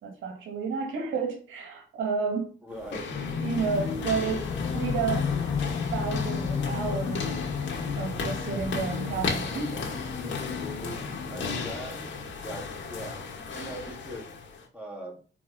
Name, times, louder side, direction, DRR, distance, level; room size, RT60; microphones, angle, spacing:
voice 1, 0.0-2.5 3.4-5.3 5.9-7.4 7.9-10.0, right 5 dB, 75° right, 2.1 m, -31 dB
voice 2, 2.6-3.1 11.3-13.2 13.5-14.3 14.7-15.2, right 1 dB, 5° right, 2.9 m, -41 dB
sound 1, 2.7-14.7, left 4 dB, 70° left, 2.5 m, -36 dB
sound 2, 3.1-11.7, left 4 dB, 90° left, 2.2 m, -36 dB
sound 3, 3.1-13.2, left 6 dB, 25° left, 0.5 m, -35 dB
5.8 x 4.7 x 5.6 m
cardioid pair, 90°, 20 cm